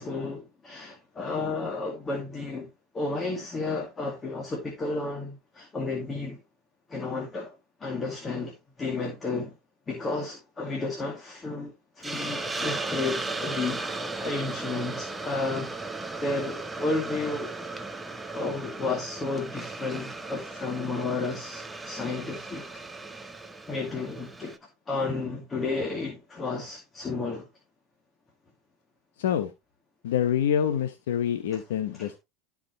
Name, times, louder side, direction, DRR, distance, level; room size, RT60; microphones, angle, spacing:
voice 1, 0.0-2.7 2.9-6.4 6.9-9.6 9.9-15.7 16.2-17.5 18.3-22.7 23.7-24.6 24.9-27.5 31.5-31.6 31.9-32.1, left 3 dB, 20° left, 2.2 m, -32 dB
Hiss, 12.0-24.6, right 3 dB, 10° right, 0.9 m, -36 dB
voice 2, 29.2-29.5 30.0-32.2, left 9 dB, 90° left, 0.9 m, -26 dB
12.5 x 4.9 x 3.0 m
supercardioid pair, 110°, 0 cm